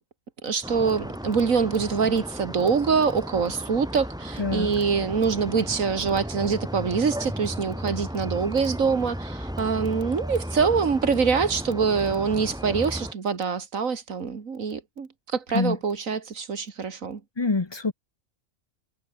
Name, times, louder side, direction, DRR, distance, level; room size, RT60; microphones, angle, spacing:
voice 1, 0.4-17.2, right 5 dB, 85° right, 2.3 m, -25 dB
sound 1, 0.6-13.1, equal, 5° right, 4.4 m, -35 dB
voice 2, 4.4-4.7 15.5-15.8 17.4-17.9, left 3 dB, 25° left, 0.8 m, -25 dB
omnidirectional pair, 1.4 m